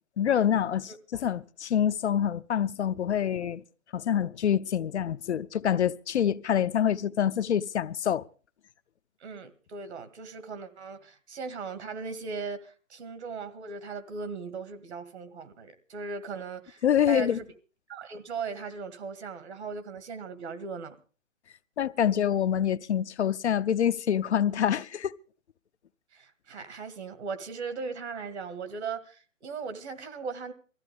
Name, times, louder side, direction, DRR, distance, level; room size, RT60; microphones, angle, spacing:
voice 1, 0.2-3.6 3.9-8.3 16.8-17.4 21.8-25.1, left 9 dB, 60° left, 0.6 m, -26 dB
voice 2, 9.2-17.5 17.9-21.0 26.1-30.5, right 5 dB, 60° right, 2.0 m, -38 dB
20.0 x 14.5 x 3.5 m
hypercardioid pair, 150°, 38 cm